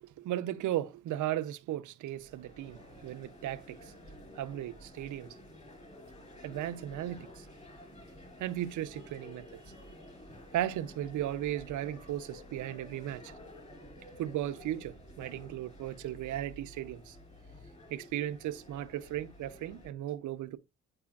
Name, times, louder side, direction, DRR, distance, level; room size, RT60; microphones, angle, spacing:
voice 1, 0.0-3.9 4.3-5.4 6.4-7.5 8.4-9.6 10.5-13.3 14.2-17.2 17.9-20.6, right 12 dB, 75° right, 0.7 m, -36 dB
sound 1, 2.1-19.9, left 1 dB, 20° left, 4.2 m, -51 dB
9.8 x 4.8 x 2.4 m
cardioid pair, 90°, 30 cm